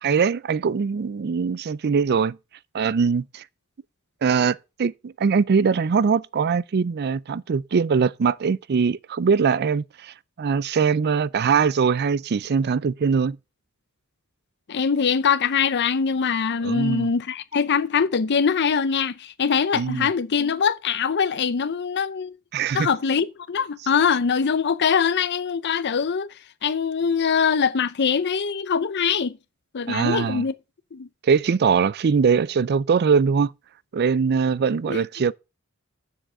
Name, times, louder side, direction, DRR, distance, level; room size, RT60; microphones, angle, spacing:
voice 1, 0.0-2.4 2.7-3.4 4.2-13.4 16.6-17.1 19.7-20.1 22.5-22.9 29.9-30.4 31.2-33.5 33.9-35.3, right 5 dB, 50° right, 0.4 m, -22 dB
voice 2, 14.7-22.4 22.7-26.3 26.6-29.4 29.7-30.5 30.9-31.1 34.9-35.0, left 6 dB, 55° left, 0.6 m, -23 dB
7.4 x 6.4 x 7.4 m
head